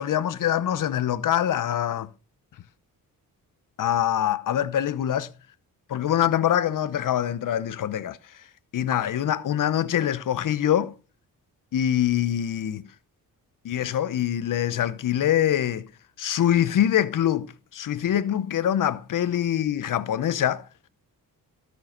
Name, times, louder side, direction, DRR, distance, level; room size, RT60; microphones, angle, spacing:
voice 1, 0.0-2.1 3.8-5.3 5.9-8.2 8.7-10.9 11.7-12.8 13.6-15.9 16.2-20.6, left 10 dB, 60° left, 0.8 m, -24 dB
12.5 x 6.3 x 3.8 m
cardioid pair, 95°, 35 cm